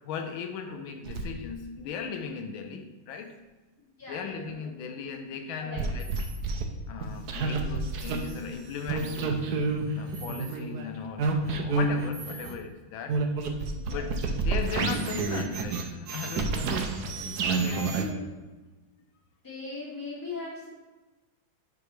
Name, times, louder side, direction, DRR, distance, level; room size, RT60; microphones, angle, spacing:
voice 1, 0.0-3.4 4.1-6.1 6.9-9.5 10.0-13.2 13.9-16.9 17.5-18.0, left 6 dB, 85° left, 6 dB, 1.4 m, -37 dB
sound 1, 1.1-1.2 5.8-6.6 7.0-8.2 8.9-12.6 13.1-18.0, right 4 dB, 65° right, 1.1 m, -29 dB
voice 2, 3.8-4.8 5.5-5.8 12.2-12.5 13.7-14.1 17.6-18.4 19.4-20.7, left 3 dB, 10° left, -7 dB, 2.1 m, -40 dB
sound 2, 6.0-6.4 8.0-8.4 10.1-10.5 12.1-12.5, right 2 dB, 45° right, 1.6 m, -45 dB
7.2 x 6.0 x 3.2 m, 1.2 s
omnidirectional pair, 2.2 m